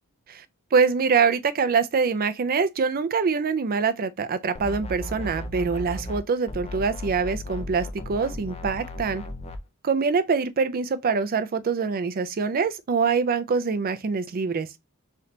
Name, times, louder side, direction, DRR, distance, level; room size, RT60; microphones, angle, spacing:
voice 1, 0.7-9.2 9.8-14.7, right 5 dB, 40° right, 0.4 m, -24 dB
sound 1, 4.5-6.2 6.5-9.6, left 1 dB, 30° left, 0.5 m, -35 dB
3.3 x 2.8 x 3.8 m
head